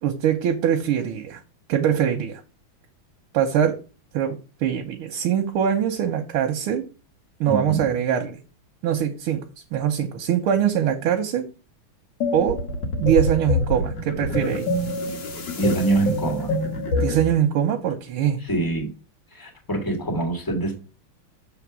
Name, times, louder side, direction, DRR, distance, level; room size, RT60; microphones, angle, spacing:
voice 1, 0.0-1.4 1.7-2.4 3.3-3.8 4.1-6.8 7.4-8.4 8.8-9.4 9.7-11.5 12.3-12.6 13.0-14.7 17.0-18.4, right 9 dB, 85° right, 1.7 m, -22 dB
voice 2, 7.5-7.9 15.6-16.5 18.4-18.9 19.3-20.7, right 2 dB, 10° left, 1.7 m, -24 dB
sound 1, 12.2-17.4, left 1 dB, 60° left, 1.7 m, -26 dB
7.0 x 3.5 x 6.1 m
omnidirectional pair, 2.3 m